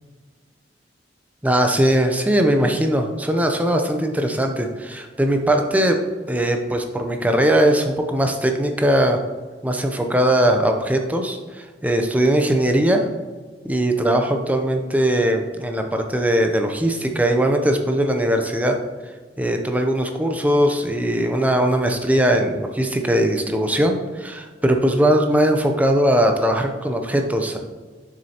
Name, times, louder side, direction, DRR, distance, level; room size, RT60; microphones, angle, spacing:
voice 1, 1.4-6.0 6.3-9.2 9.6-13.1 13.6-18.8 19.4-27.6, right 1 dB, 10° right, 4 dB, 0.5 m, -20 dB
7.2 x 6.3 x 2.8 m, 1.5 s
head